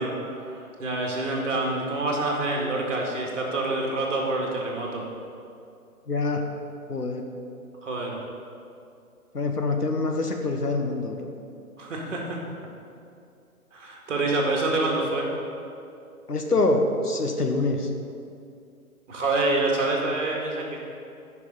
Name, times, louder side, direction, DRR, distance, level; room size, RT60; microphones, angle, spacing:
voice 1, 0.0-5.0 7.8-8.2 11.8-12.4 13.7-15.3 15.5-15.6 19.1-20.8, right 2 dB, 55° right, -1 dB, 2.1 m, -27 dB
voice 2, 6.1-6.5 6.9-7.2 9.3-11.3 16.3-17.9, left 2 dB, 85° left, 3 dB, 1.3 m, -25 dB
14.0 x 5.9 x 3.9 m, 2.5 s
figure-of-eight pair, 130°, 45 cm